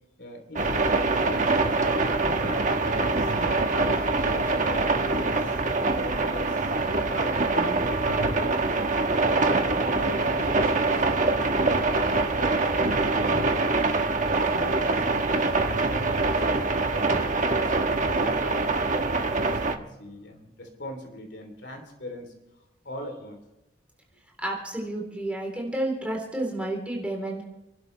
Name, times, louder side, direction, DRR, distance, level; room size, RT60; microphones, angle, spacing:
voice 1, 0.2-1.6 1.9-9.1 9.7-11.4 11.7-12.9 13.2-13.7 14.1-22.3 22.8-23.4, equal, 60° left, 4 dB, 3.2 m, -40 dB
sound 1, 0.6-19.8, right 3 dB, 40° right, 1.2 m, -24 dB
voice 2, 24.4-27.4, right 1 dB, 5° right, 0 dB, 3.4 m, -30 dB
29.5 x 12.0 x 3.2 m, 0.95 s
head